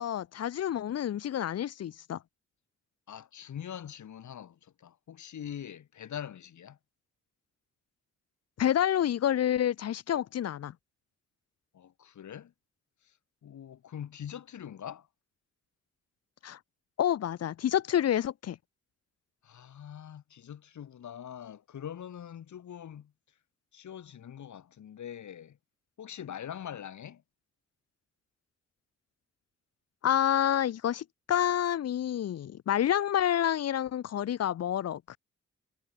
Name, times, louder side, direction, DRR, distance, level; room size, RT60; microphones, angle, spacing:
voice 1, 0.0-2.2 8.6-10.7 16.4-16.6 17.0-18.6 30.0-35.2, left 10 dB, 60° left, 0.6 m, -28 dB
voice 2, 3.1-6.8 11.7-12.5 13.4-15.1 19.4-23.1 23.7-25.6 26.0-27.2, left 9 dB, 80° left, 3.0 m, -43 dB
cardioid pair, 75°, 29 cm